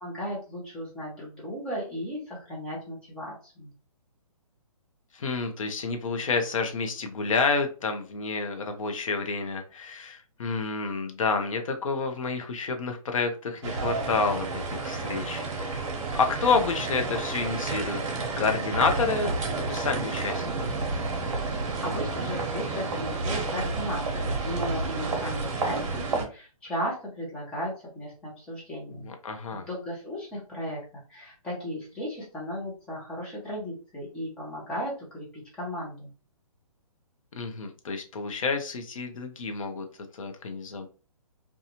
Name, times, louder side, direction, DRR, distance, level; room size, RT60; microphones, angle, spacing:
voice 1, 0.0-3.7 21.5-29.1 29.5-30.8 31.1-36.1, equal, 5° left, -5 dB, 0.6 m, -35 dB
voice 2, 5.1-18.0 18.4-20.6 28.9-29.7 37.3-39.9 40.2-40.9, left 4 dB, 60° left, 5 dB, 0.7 m, -29 dB
sound 1, 13.6-26.3, right 3 dB, 55° right, 0.8 m, -30 dB
2.8 x 2.2 x 2.8 m, 0.37 s
hypercardioid pair, 160°, 19 cm